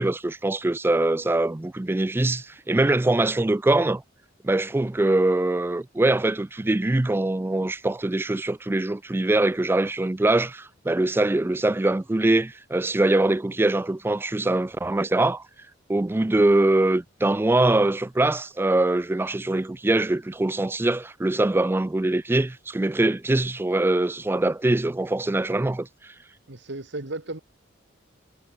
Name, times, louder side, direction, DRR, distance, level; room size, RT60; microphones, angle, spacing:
voice 1, 0.0-4.0 4.4-15.4 15.9-26.1, right 2 dB, 10° right, 0.3 m, -23 dB
voice 2, 26.5-27.4, right 2 dB, 60° right, 1.9 m, -34 dB
head